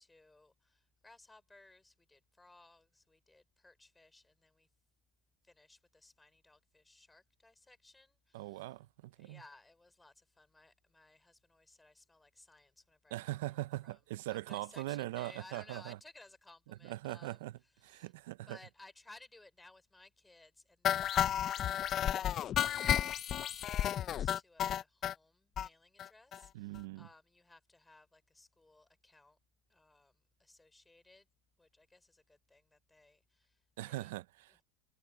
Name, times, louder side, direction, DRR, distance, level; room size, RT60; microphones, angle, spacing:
voice 1, 0.0-4.7 5.4-8.8 9.1-14.0 14.3-18.1 18.5-29.4 29.7-31.3 31.6-34.2 34.5-34.6, left 2 dB, 10° left, 4.8 m, -61 dB
voice 2, 8.3-9.4 13.1-16.0 16.8-17.5 17.8-18.6 26.5-27.1 33.8-34.6, right 17 dB, 85° right, 0.6 m, -41 dB
sound 1, 20.8-25.1 25.6-25.7 26.0-26.1 26.3-26.4 26.8-26.9, left 10 dB, 35° left, 0.5 m, -32 dB
supercardioid pair, 135°, 0 cm